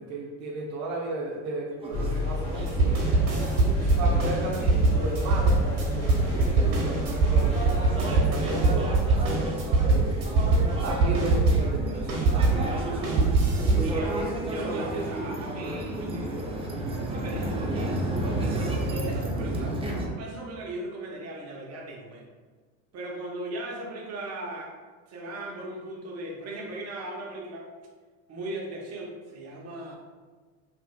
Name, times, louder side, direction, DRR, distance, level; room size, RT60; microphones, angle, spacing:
voice 1, 0.0-3.0 3.8-7.5 8.2-12.6 13.6-13.8, right 2 dB, 80° right, -5 dB, 0.6 m, -35 dB
sound 1, 1.8-20.1, right 1 dB, 15° right, 0.4 m, -33 dB
sound 2, 1.9-8.1, left 2 dB, 65° left, 1.3 m, -31 dB
sound 3, 2.4-12.6 13.0-13.9, right 3 dB, 55° right, 1.1 m, -23 dB
voice 2, 3.2-3.8 12.9-14.2 14.5-16.5 17.1-18.0 18.9-22.2 22.9-24.7 25.1-27.6 28.3-30.0, right 1 dB, 40° right, -1 dB, 0.8 m, -38 dB
3.3 x 2.5 x 2.2 m, 1.4 s
hypercardioid pair, 85°, 40 cm